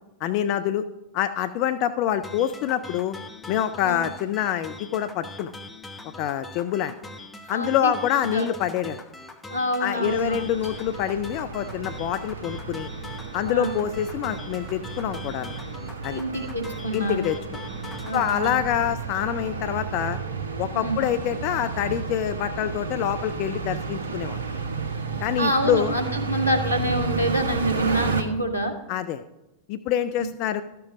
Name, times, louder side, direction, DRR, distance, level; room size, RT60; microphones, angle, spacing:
voice 1, 0.2-0.8 1.1-3.2 3.5-5.5 6.2-7.0 7.5-9.0 9.8-12.9 13.3-15.5 16.0-16.2 16.9-17.4 18.1-20.2 20.6-24.4 25.2-25.9 28.9-29.2 29.7-30.6, left 10 dB, 45° left, 11 dB, 0.4 m, -26 dB
sound 1, 2.2-18.6, left 2 dB, 15° left, 1.0 m, -42 dB
voice 2, 7.5-7.9 8.3-8.5 9.5-10.4 13.5-13.8 16.1-17.3 18.0-18.6 20.7-21.0 25.4-28.7 30.2-30.3, right 1 dB, 90° left, 3 dB, 1.3 m, -27 dB
sound 2, 10.1-28.2, right 4 dB, 70° right, 0.9 m, -32 dB
12.5 x 6.9 x 5.0 m, 0.96 s
figure-of-eight pair, 90°, 0 cm